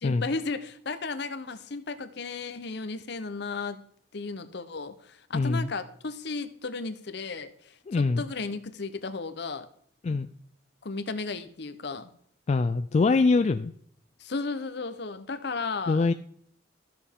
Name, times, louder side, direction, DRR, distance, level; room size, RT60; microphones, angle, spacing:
voice 1, 0.0-3.8 4.1-9.7 10.8-12.1 14.2-16.1, left 4 dB, 60° left, 10 dB, 0.8 m, -34 dB
voice 2, 5.3-5.7 7.9-8.2 10.0-10.3 12.5-13.7 15.9-16.1, left 3 dB, 35° left, 9 dB, 0.3 m, -23 dB
13.5 x 6.8 x 3.6 m, 0.64 s
head